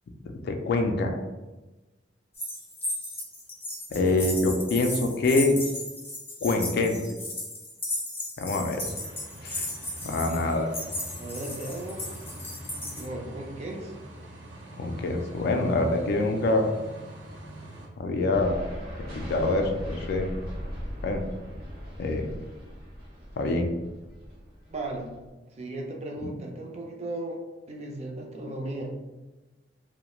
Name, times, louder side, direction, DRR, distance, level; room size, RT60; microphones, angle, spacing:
voice 1, 0.4-1.1 3.9-5.6 6.4-7.0 8.4-8.8 9.4-9.7 10.0-10.7 14.8-16.7 18.0-18.6 18.9-20.3 21.0-21.2 22.0-22.3 23.4-23.7, left 2 dB, 60° left, 4 dB, 0.3 m, -25 dB
sound 1, 2.3-13.1, left 1 dB, 15° left, 0.5 m, -35 dB
sound 2, 8.8-17.9, right 1 dB, 85° right, 0.7 m, -44 dB
voice 2, 11.2-12.1 12.9-13.9 24.7-25.1 25.6-27.4 27.7-28.9, right 2 dB, 35° right, 1 dB, 0.4 m, -36 dB
sound 3, 18.3-25.3, equal, 55° right, 0.8 m, -39 dB
2.3 x 2.0 x 2.9 m, 1.1 s
head